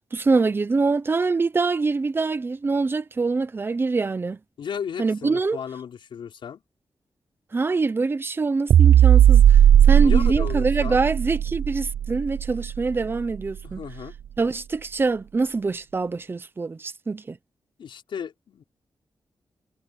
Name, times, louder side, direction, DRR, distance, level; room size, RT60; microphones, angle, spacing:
voice 1, 0.1-4.4 5.0-5.6 7.5-9.6 9.9-13.8 14.4-17.4, right 3 dB, 25° right, 0.8 m, -24 dB
voice 2, 4.6-6.6 10.0-11.0 13.6-14.2 17.8-18.6, left 7 dB, 90° left, 5.4 m, -35 dB
sound 1, 8.7-13.2, right 10 dB, 85° right, 0.4 m, -16 dB
wide cardioid pair, 150°, 8 cm